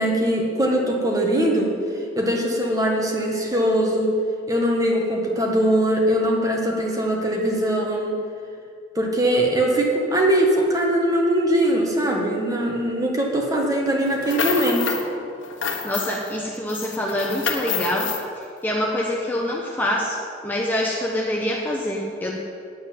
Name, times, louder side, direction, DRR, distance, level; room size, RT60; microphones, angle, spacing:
voice 1, 0.0-1.7 2.1-4.1 4.5-8.2 8.9-15.0, right 1 dB, 20° right, 0 dB, 1.6 m, -21 dB
sound 1, 14.1-15.1 15.4-16.3 16.7-18.2, left 6 dB, 75° left, 1.4 m, -28 dB
voice 2, 15.8-22.4, left 1 dB, 10° left, -2 dB, 1.0 m, -26 dB
9.4 x 8.2 x 9.1 m, 2.4 s
head